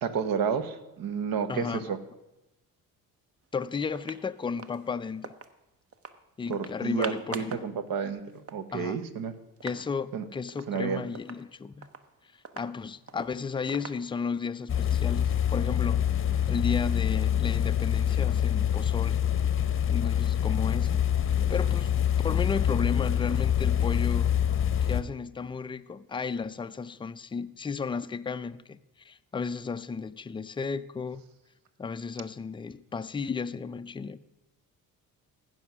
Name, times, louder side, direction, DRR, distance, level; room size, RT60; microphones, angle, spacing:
voice 1, 0.0-2.0 6.5-9.3 10.1-10.2 10.7-11.1, right 6 dB, 65° right, 1.1 m, -31 dB
voice 2, 1.5-1.9 3.5-5.3 6.4-7.7 8.7-9.0 9.6-11.9 12.6-16.0 16.5-19.2 19.9-21.0 21.5-21.9 22.2-24.3 24.8-31.2 31.8-34.2, left 5 dB, 15° left, 0.3 m, -34 dB
sound 1, 3.4-3.5 3.9-5.5 5.9-6.2 6.5-7.7 8.0-8.1 8.3-9.9 10.2-10.3 10.5-10.8 11.2-14.5, right 5 dB, 40° right, 0.8 m, -44 dB
sound 2, 14.7-25.0, left 9 dB, 35° left, 0.7 m, -25 dB
15.0 x 5.5 x 6.0 m
cardioid pair, 100°, 36 cm